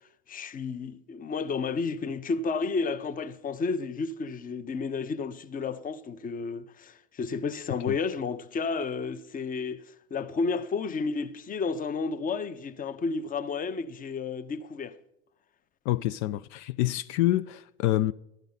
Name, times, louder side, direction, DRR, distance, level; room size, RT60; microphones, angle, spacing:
voice 1, 0.3-9.8 10.1-15.0, left 4 dB, 25° left, 0.7 m, -31 dB
voice 2, 15.9-18.1, left 15 dB, 70° left, 0.5 m, -27 dB
11.5 x 9.0 x 4.0 m
hypercardioid pair, 80°, 35 cm